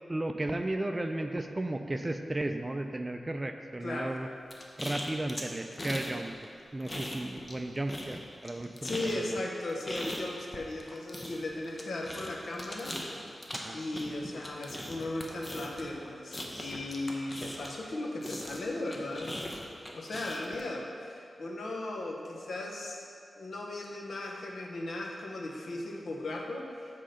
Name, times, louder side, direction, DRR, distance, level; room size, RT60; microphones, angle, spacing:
voice 1, 0.1-4.3 4.8-6.3 6.7-9.4 13.5-13.8 14.3-14.5 14.7-14.9, right 1 dB, 25° right, 6 dB, 0.4 m, -34 dB
voice 2, 3.8-4.2 8.8-12.9 13.7-19.3 19.9-23.0 23.4-26.9, left 2 dB, 70° left, 0 dB, 0.9 m, -37 dB
sound 1, 4.5-6.1 6.4-7.6 7.9-17.9 18.2-20.6, left 1 dB, 25° left, 0.8 m, -40 dB
7.6 x 3.8 x 5.1 m, 2.4 s
wide cardioid pair, 80°, 0 cm